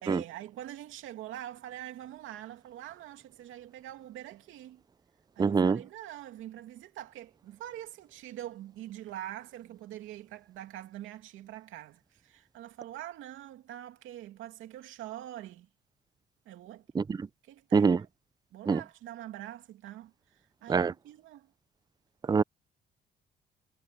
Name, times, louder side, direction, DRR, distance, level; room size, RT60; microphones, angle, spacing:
voice 1, 0.0-4.8 5.4-15.7 16.5-16.8 17.4-18.1 18.5-20.1 20.6-21.5, right 13 dB, 90° right, 2.6 m, -44 dB
voice 2, 5.4-5.8 17.0-17.2 17.7-18.0 18.7-18.8 20.7-20.9 22.3-22.4, right 5 dB, 20° right, 0.4 m, -24 dB
cardioid pair, 90°, 20 cm